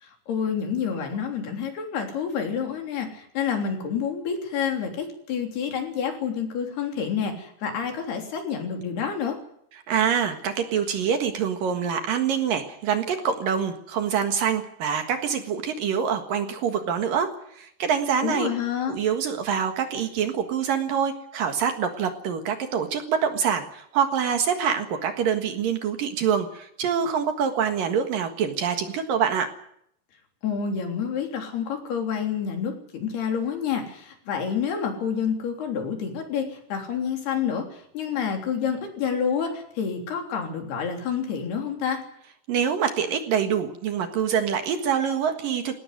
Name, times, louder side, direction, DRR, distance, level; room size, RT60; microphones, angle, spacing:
voice 1, 0.0-9.4 18.2-19.0 30.4-42.0, left 7 dB, 65° left, 3 dB, 5.3 m, -28 dB
voice 2, 9.9-18.5 18.9-29.5 42.5-45.8, right 7 dB, 60° right, 6 dB, 3.0 m, -25 dB
20.0 x 18.0 x 9.4 m, 0.71 s
omnidirectional pair, 4.9 m